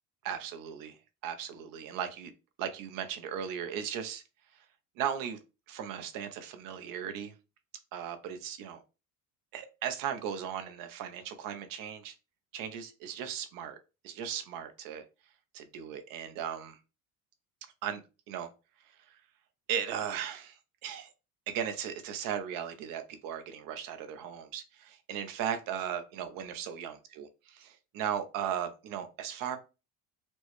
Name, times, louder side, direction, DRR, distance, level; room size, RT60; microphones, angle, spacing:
voice 1, 0.2-1.0 1.2-2.3 2.6-4.2 5.0-5.4 5.7-7.3 7.9-8.8 9.5-12.1 12.5-13.8 14.0-15.0 15.5-16.8 17.8-18.0 18.3-18.5 19.1-19.2 19.7-21.1 21.5-29.6, right 9 dB, 65° right, 8 dB, 0.7 m, -37 dB
4.4 x 2.1 x 3.0 m, 0.30 s
cardioid pair, 165°, 36 cm